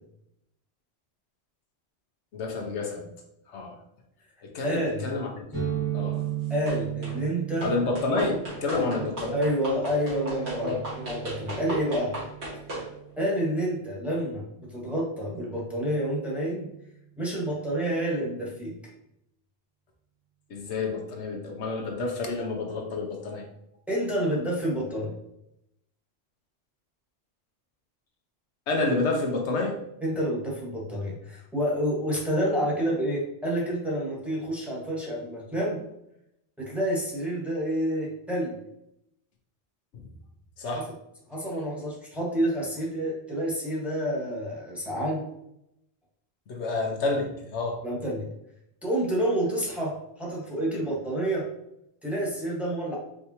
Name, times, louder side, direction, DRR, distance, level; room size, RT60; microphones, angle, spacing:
voice 1, 2.3-3.1 3.5-3.8 4.4-5.4 5.9-6.3 7.6-9.4 10.6-10.8 20.5-23.5 28.7-29.8 40.6-40.9 46.5-47.8, left 3 dB, 75° left, 2 dB, 1.0 m, -29 dB
voice 2, 4.6-5.1 6.5-7.7 8.7-9.0 9.3-12.1 13.2-16.7 17.2-18.7 23.9-25.1 30.0-35.8 36.6-38.5 40.7-40.8 41.3-45.2 47.8-48.3 48.8-51.5 52.0-53.0, equal, ahead, -4 dB, 1.2 m, -29 dB
sound 1, 5.5-13.1, right 10 dB, 20° left, 1.0 m, -35 dB
sound 2, 6.7-7.2 7.6-12.9, right 1 dB, 65° right, 1.9 m, -37 dB
4.7 x 3.3 x 2.8 m, 0.80 s
omnidirectional pair, 1.2 m